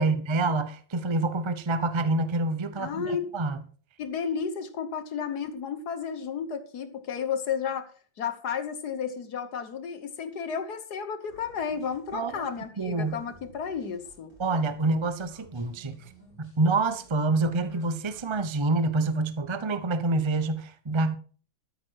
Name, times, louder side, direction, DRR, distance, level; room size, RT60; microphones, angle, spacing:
voice 1, 0.0-3.0 3.3-3.5 12.1-12.5 12.8-13.2 14.4-16.0 16.4-21.2, right 3 dB, 35° right, 0.4 m, -27 dB
voice 2, 2.8-3.3 4.0-7.9 8.2-14.3, left 6 dB, 60° left, 1.5 m, -32 dB
sound 1, 11.3-18.5, equal, 10° right, 4.8 m, -55 dB
13.0 x 9.4 x 4.6 m
omnidirectional pair, 2.1 m